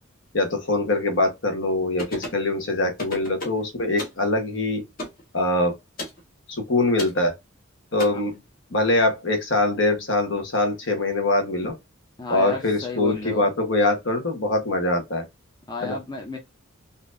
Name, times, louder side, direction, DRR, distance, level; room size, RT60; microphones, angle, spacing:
voice 1, 0.3-4.8 5.3-5.7 6.5-7.3 7.9-8.3 8.7-11.7 12.3-15.3 15.8-16.0, left 2 dB, 60° left, 1.2 m, -23 dB
sound 1, 2.0-2.4 3.0-3.6 4.0-4.2 5.0-5.2 6.0-6.2 7.0-7.2 8.0-8.1, left 1 dB, 40° left, 1.5 m, -32 dB
voice 2, 12.2-13.5 15.7-16.4, left 3 dB, 20° left, 0.7 m, -32 dB
4.3 x 2.7 x 2.5 m
head